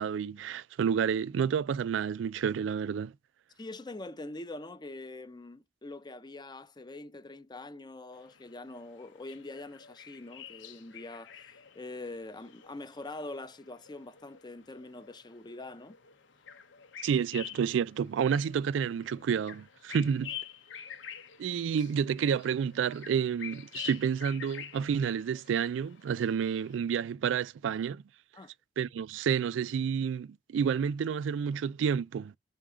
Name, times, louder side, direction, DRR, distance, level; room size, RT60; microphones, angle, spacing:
voice 1, 0.0-3.1 17.0-20.3 21.4-28.0 28.8-32.3, right 7 dB, 80° right, 0.3 m, -30 dB
voice 2, 3.6-16.0 28.3-28.5, left 2 dB, 25° left, 0.6 m, -44 dB
sound 1, 8.1-26.8, left 8 dB, 85° left, 1.0 m, -48 dB
5.6 x 3.7 x 4.9 m
head